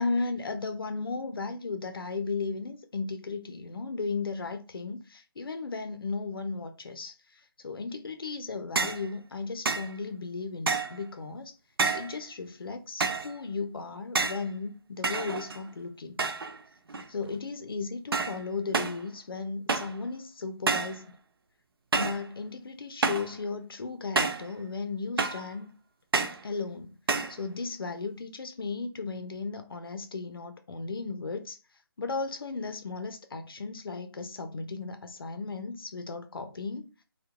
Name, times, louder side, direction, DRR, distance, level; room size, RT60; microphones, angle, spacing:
voice 1, 0.0-7.1 7.6-11.5 11.9-16.2 17.1-21.0 21.9-25.7 26.4-26.9 27.3-31.6 32.0-36.9, left 4 dB, 65° left, 0.5 m, -35 dB
sound 1, 8.8-9.1 9.6-9.9 10.7-11.0 11.8-12.2 13.0-13.3 14.1-14.5 15.0-15.7 16.2-16.6 16.9-17.3 18.1-18.4 18.7-19.0 19.7-20.0 20.7-21.0 21.9-22.2 23.0-23.3 24.2-24.5 25.2-25.5 26.1-26.4 27.1-27.4, right 4 dB, 70° right, 0.4 m, -29 dB
2.7 x 2.1 x 2.2 m
figure-of-eight pair, 155°, 13 cm